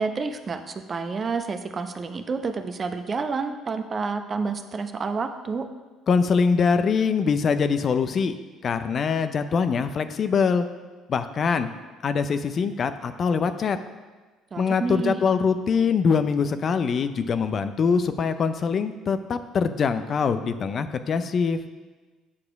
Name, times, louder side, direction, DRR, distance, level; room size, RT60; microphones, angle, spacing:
voice 1, 0.0-5.7 14.5-15.2, right 4 dB, 40° right, 8 dB, 0.7 m, -29 dB
voice 2, 6.1-8.4 8.6-10.7 11.1-11.7 12.0-13.8 14.6-21.6, left 5 dB, 45° left, 10 dB, 0.5 m, -23 dB
8.5 x 4.9 x 5.9 m, 1.3 s
hypercardioid pair, 60°, 0 cm